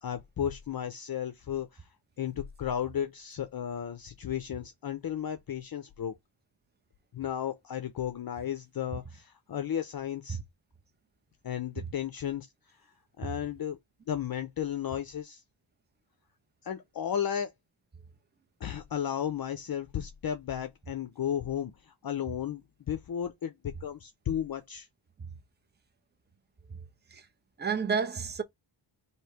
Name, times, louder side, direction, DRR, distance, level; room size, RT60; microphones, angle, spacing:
voice 1, 0.0-6.2 7.1-10.4 11.4-13.8 14.1-15.4 16.6-17.5 18.6-24.9, left 9 dB, 50° left, 0.6 m, -34 dB
voice 2, 27.6-28.4, right 5 dB, 20° right, 0.6 m, -30 dB
3.2 x 2.8 x 4.5 m
wide cardioid pair, 115°, 47 cm